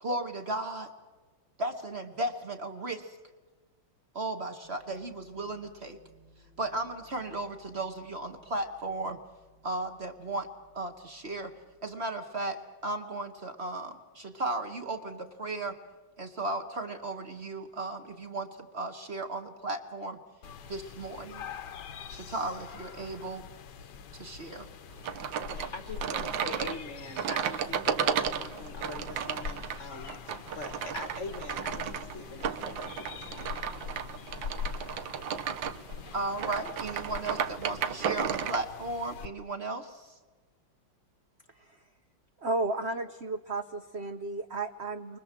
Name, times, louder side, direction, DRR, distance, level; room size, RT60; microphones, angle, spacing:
voice 1, 0.0-0.9 1.6-3.2 4.1-6.0 6.6-9.2 9.6-10.5 10.7-11.5 11.8-15.8 16.2-20.2 20.7-21.5 22.1-23.4 24.1-24.7 36.1-40.1, right 2 dB, 35° right, 6 dB, 1.5 m, -35 dB
sound 1, 4.6-11.8, equal, 90° right, 3.6 m, -62 dB
sound 2, 20.4-39.3, left 7 dB, 60° left, 1.5 m, -44 dB
sound 3, 25.0-38.6, right 8 dB, 70° right, 1.7 m, -34 dB
voice 2, 25.5-33.6, left 3 dB, 40° left, 8 dB, 1.3 m, -43 dB
voice 3, 42.4-45.2, right 2 dB, 50° right, 7 dB, 0.8 m, -33 dB
30.0 x 24.0 x 7.6 m, 1.3 s
omnidirectional pair, 2.3 m